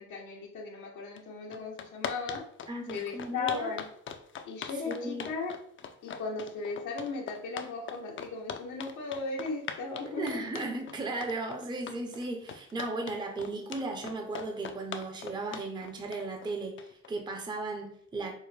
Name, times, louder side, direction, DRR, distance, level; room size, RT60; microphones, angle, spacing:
voice 1, 0.0-2.4 2.9-3.8 4.4-5.6 6.0-10.4, left 4 dB, 80° left, 0 dB, 0.9 m, -36 dB
sound 1, 1.2-1.3 1.5-17.1, left 7 dB, 40° left, 0.4 m, -41 dB
voice 2, 2.7-3.7 4.7-5.3 10.0-18.3, right 2 dB, 15° right, 3 dB, 0.5 m, -36 dB
4.6 x 2.1 x 3.2 m, 0.68 s
cardioid pair, 90°, 30 cm